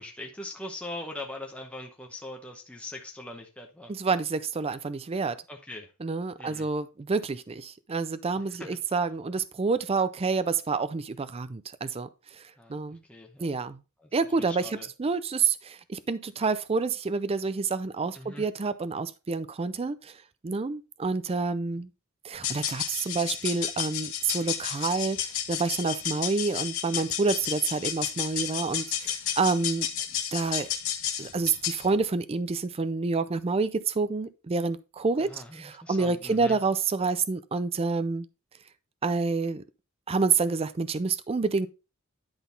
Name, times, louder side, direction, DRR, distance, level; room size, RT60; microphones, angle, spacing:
voice 1, 0.0-3.9 5.5-5.9 6.4-6.7 8.4-8.7 12.6-13.6 14.0-14.9 18.1-18.5 35.2-36.6, left 1 dB, 5° left, 0.9 m, -42 dB
voice 2, 3.9-5.4 6.0-12.1 12.4-12.5 12.7-13.0 13.4-13.8 14.1-14.7 15.0-20.1 20.4-21.9 22.2-25.2 25.5-29.9 30.3-30.7 31.2-38.3 39.0-39.6 40.1-41.7, right 4 dB, 25° right, 0.4 m, -28 dB
sound 1, 22.3-31.9, left 9 dB, 65° left, 1.4 m, -32 dB
10.5 x 3.9 x 3.9 m
head